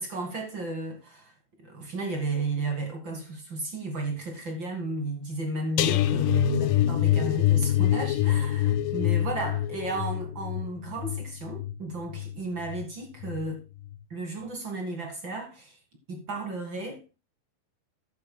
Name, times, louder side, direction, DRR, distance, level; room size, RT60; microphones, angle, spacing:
voice 1, 0.0-1.3 1.6-13.6 14.1-15.8 16.1-17.2, right 2 dB, 40° right, 1.8 m, -33 dB
sound 1, 5.8-12.8 13.2-13.5 13.8-14.0, left 12 dB, 85° left, 2.0 m, -26 dB
13.5 x 10.0 x 2.3 m
omnidirectional pair, 4.7 m